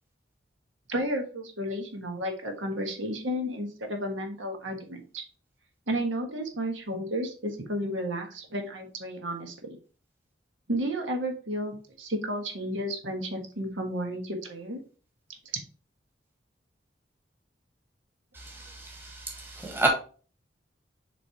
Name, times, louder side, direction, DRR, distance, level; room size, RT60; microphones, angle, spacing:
voice 1, 0.9-5.2 5.9-9.5 10.7-14.8, equal, 80° right, 3 dB, 1.5 m, -32 dB
voice 2, 18.3-19.9, right 2 dB, 10° right, 0 dB, 1.4 m, -31 dB
7.5 x 3.4 x 4.4 m, 0.39 s
head